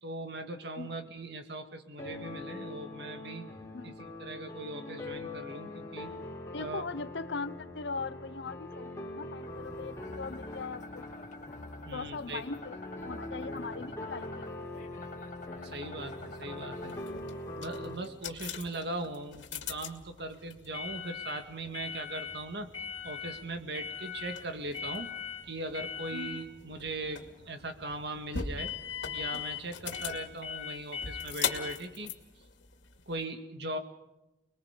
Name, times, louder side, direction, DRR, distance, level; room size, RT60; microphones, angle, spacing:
voice 1, 0.0-3.5 3.8-3.9 4.2-6.1 6.6-6.8 11.8-12.4 15.6-16.9 17.6-22.7 23.0-25.1 25.5-28.7 29.1-32.1 33.1-33.8, right 2 dB, 60° right, 6 dB, 1.9 m, -39 dB
sound 1, 2.0-18.0, left 2 dB, 15° left, 3.9 m, -43 dB
voice 2, 6.5-8.9 9.2-11.1 11.9-12.8 13.0-14.9 26.1-26.5, left 4 dB, 70° left, 14 dB, 0.8 m, -40 dB
sound 2, 9.4-17.2, left 2 dB, 40° left, 2.0 m, -49 dB
sound 3, 16.8-33.2, left 7 dB, 90° left, 2.3 m, -39 dB
29.5 x 21.0 x 5.2 m, 0.97 s
head